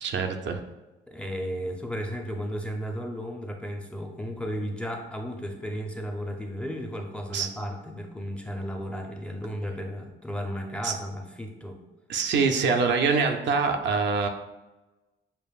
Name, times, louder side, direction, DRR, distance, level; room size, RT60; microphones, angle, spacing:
voice 1, 0.0-0.6 7.3-7.5 10.8-10.9 12.1-14.3, right 4 dB, 65° right, 5 dB, 0.5 m, -24 dB
voice 2, 1.1-11.8, equal, 5° left, 2 dB, 0.5 m, -34 dB
6.7 x 2.5 x 2.3 m, 1.1 s
cardioid pair, 90°, 20 cm